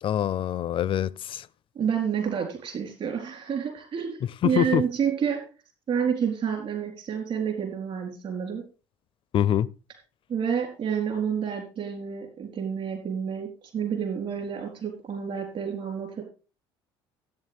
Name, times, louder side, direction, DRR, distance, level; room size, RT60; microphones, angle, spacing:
voice 1, 0.0-1.5 4.4-4.8 9.3-9.7, left 10 dB, 45° left, 0.5 m, -24 dB
voice 2, 1.7-5.4 5.9-8.6 10.3-13.5 13.7-16.2, right 7 dB, 50° right, 4.1 m, -29 dB
13.5 x 8.9 x 3.5 m
hypercardioid pair, 65°, 13 cm